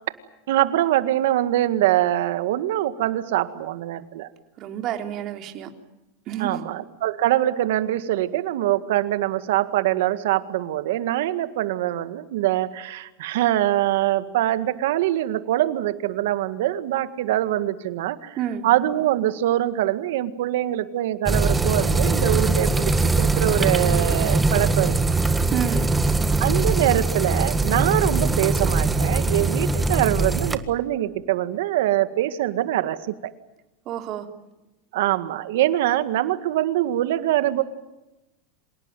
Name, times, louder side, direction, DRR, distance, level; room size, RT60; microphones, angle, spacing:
voice 1, 0.5-4.3 6.4-18.4 18.6-24.9 26.4-33.3 34.9-37.6, right 14 dB, 75° right, 12 dB, 1.9 m, -23 dB
voice 2, 4.6-5.7 6.3-6.6 18.4-18.7 25.5-25.9 33.9-34.3, right 10 dB, 45° right, 5 dB, 3.4 m, -29 dB
sound 1, 21.3-30.6, right 3 dB, 10° right, 1.6 m, -21 dB
27.0 x 18.0 x 9.1 m, 0.99 s
supercardioid pair, 125°, 0 cm